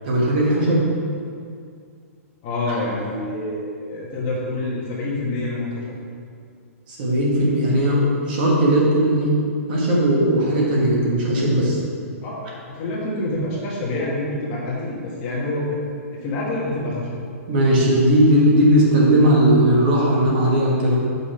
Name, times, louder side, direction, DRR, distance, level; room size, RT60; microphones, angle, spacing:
voice 1, 0.0-0.9 6.9-9.3 9.7-11.8 17.5-21.0, right 1 dB, 40° right, -4 dB, 1.6 m, -17 dB
voice 2, 2.4-5.9 12.2-12.4 12.7-15.8 16.2-17.1, left 2 dB, 25° left, -5 dB, 1.4 m, -27 dB
6.9 x 5.6 x 4.3 m, 2.2 s
hypercardioid pair, 170°, 8 cm